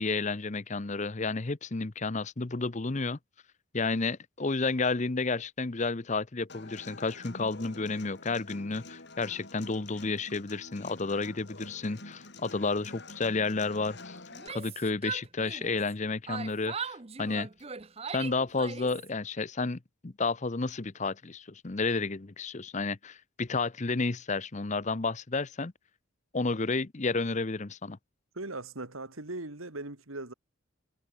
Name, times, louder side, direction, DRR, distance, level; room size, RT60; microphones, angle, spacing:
voice 1, 0.0-3.2 3.7-14.2 14.5-17.5 18.1-25.7 26.3-28.0, left 3 dB, 35° left, 0.7 m, -31 dB
Human voice / Acoustic guitar, 6.5-14.5, left 2 dB, 55° left, 5.0 m, -47 dB
Yell, 14.3-15.9 16.3-19.1, right 6 dB, 30° right, 0.8 m, -39 dB
voice 2, 28.3-30.3, right 2 dB, 80° right, 3.0 m, -39 dB
head